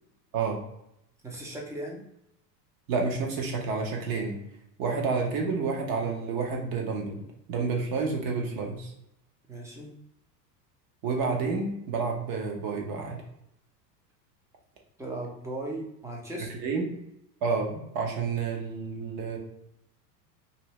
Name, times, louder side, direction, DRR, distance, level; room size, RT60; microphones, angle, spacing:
voice 1, 1.2-2.1 9.5-9.9 15.0-16.5, right 1 dB, 5° right, -2 dB, 0.6 m, -37 dB
voice 2, 2.9-4.4 4.8-7.2 7.5-8.9 11.0-13.2 16.5-17.0 17.4-19.4, right 4 dB, 45° right, 1 dB, 1.0 m, -29 dB
2.8 x 2.6 x 3.1 m, 0.80 s
hypercardioid pair, 110°, 50 cm